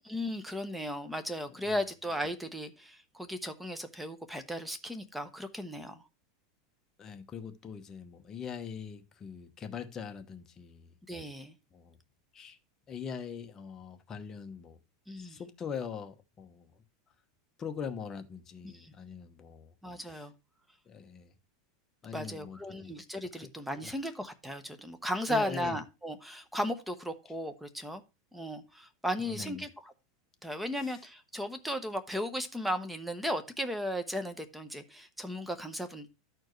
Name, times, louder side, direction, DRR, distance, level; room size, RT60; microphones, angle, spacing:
voice 1, 0.0-6.0 11.1-11.5 15.1-15.4 18.6-18.9 19.8-20.3 22.1-28.0 28.3-29.9 30.4-36.1, equal, 5° right, 0.8 m, -36 dB
voice 2, 7.0-10.9 11.7-11.9 12.3-12.6 12.9-14.8 15.2-16.7 17.6-19.7 20.9-21.3 22.0-22.9 23.8-23.9 25.3-25.8 29.3-29.7, left 7 dB, 25° left, 0.9 m, -42 dB
13.0 x 4.5 x 3.1 m
supercardioid pair, 145°, 2 cm